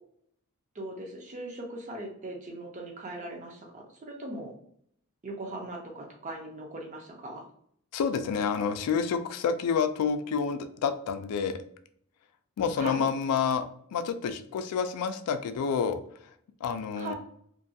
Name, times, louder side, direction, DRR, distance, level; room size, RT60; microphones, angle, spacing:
voice 1, 0.7-4.5 5.2-7.4 12.8-13.1 17.0-17.1, right 1 dB, 35° right, 1 dB, 0.5 m, -39 dB
voice 2, 7.9-11.6 12.6-13.7 13.9-16.0 16.6-17.1, left 6 dB, 85° left, 12 dB, 0.3 m, -28 dB
2.5 x 2.3 x 2.6 m, 0.67 s
head